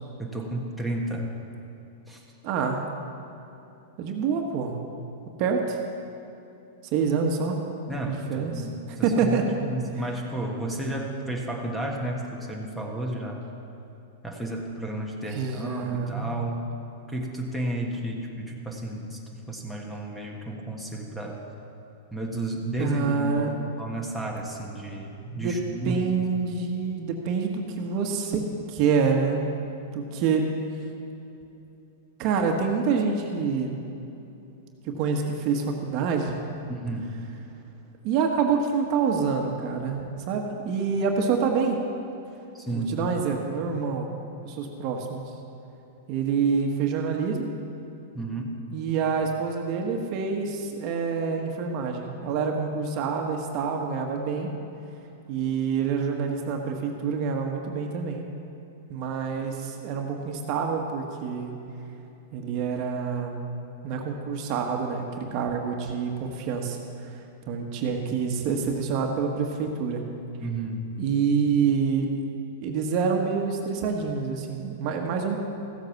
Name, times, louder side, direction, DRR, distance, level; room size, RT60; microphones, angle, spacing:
voice 1, 0.2-1.3 2.1-2.2 7.9-13.5 14.2-16.7 17.1-19.2 19.5-21.4 22.1-26.0 36.7-37.1 42.5-43.0 48.1-48.5 70.4-70.9, right 1 dB, 5° left, 0 dB, 1.5 m, -32 dB
voice 2, 2.4-2.8 4.0-4.8 5.4-5.8 6.9-7.6 8.1-8.7 9.0-9.4 15.3-16.3 22.8-23.5 25.4-25.6 25.8-29.4 29.9-30.5 32.2-33.8 34.8-36.4 38.0-41.8 42.7-44.1 44.4-45.2 46.1-47.5 48.7-54.5 55.3-58.3 58.9-61.5 62.3-63.4 63.8-67.2 67.5-70.0 71.0-72.1 72.6-75.4, right 5 dB, 45° right, 2 dB, 1.3 m, -27 dB
14.5 x 8.1 x 5.9 m, 2.9 s
hypercardioid pair, 130°, 0 cm